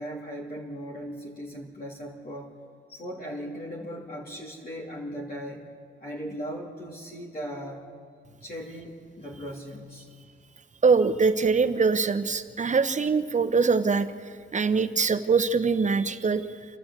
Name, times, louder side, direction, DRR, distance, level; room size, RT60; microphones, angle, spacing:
voice 1, 0.0-2.6 2.9-5.7 6.0-7.9 8.4-10.1, equal, 45° left, -3 dB, 3.2 m, -38 dB
voice 2, 10.8-14.1 14.5-16.4, right 4 dB, 35° right, 11 dB, 0.9 m, -23 dB
28.5 x 12.0 x 8.3 m, 2.2 s
cardioid pair, 95°, 21 cm